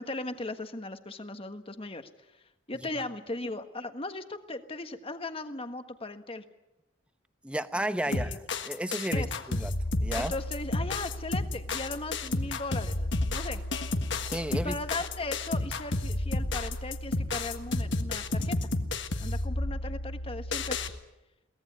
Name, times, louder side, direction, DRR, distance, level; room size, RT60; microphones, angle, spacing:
voice 1, 0.0-2.4 2.7-6.4 8.1-8.4 9.1-9.3 10.1-13.6 14.5-18.6 19.2-21.0, left 2 dB, 30° left, 8 dB, 1.4 m, -38 dB
voice 2, 7.4-8.3 8.6-9.7 10.0-10.3 14.3-14.8, right 1 dB, 5° right, 10 dB, 0.9 m, -33 dB
sound 1, 8.1-20.9, left 2 dB, 65° left, 1.6 m, -31 dB
23.0 x 18.0 x 9.5 m, 0.97 s
head